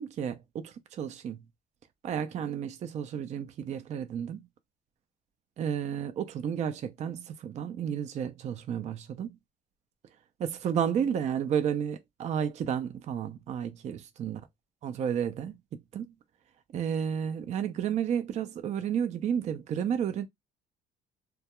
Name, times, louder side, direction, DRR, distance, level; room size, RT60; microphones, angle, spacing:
voice 1, 0.0-1.4 2.0-4.5 5.6-9.4 10.4-14.4 14.8-16.1 16.7-20.3, right 8 dB, 45° right, 0.4 m, -32 dB
2.2 x 2.2 x 2.9 m
cardioid pair, 110°, 17 cm